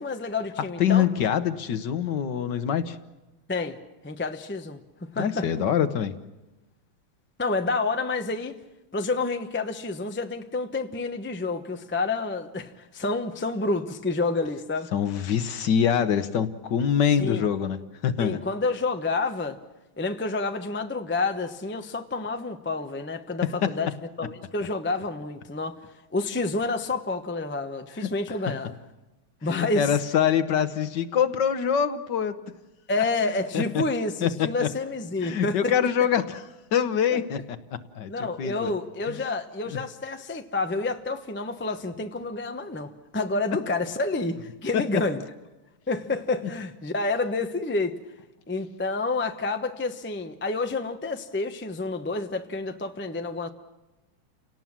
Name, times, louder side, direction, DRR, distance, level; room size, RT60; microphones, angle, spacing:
voice 1, 0.0-1.1 3.5-3.8 4.0-4.8 5.1-5.5 7.4-8.6 8.9-14.9 17.2-17.4 18.2-19.6 20.0-23.9 24.2-25.8 26.1-28.7 29.4-29.9 32.9-35.7 37.1-37.2 38.1-45.2 45.9-47.9 48.5-53.5, left 3 dB, 15° left, 0.3 m, -29 dB
voice 2, 0.8-3.0 5.2-6.2 14.9-18.4 23.6-23.7 28.0-28.1 29.4-32.4 33.0-33.1 33.5-33.8 34.2-34.7 35.2-36.4 36.7-37.6 37.9-38.1 38.4-38.7 39.1-39.2 39.7-39.8 44.7-44.8, left 8 dB, 60° left, 1.5 m, -24 dB
30.0 x 18.5 x 7.4 m
omnidirectional pair, 2.3 m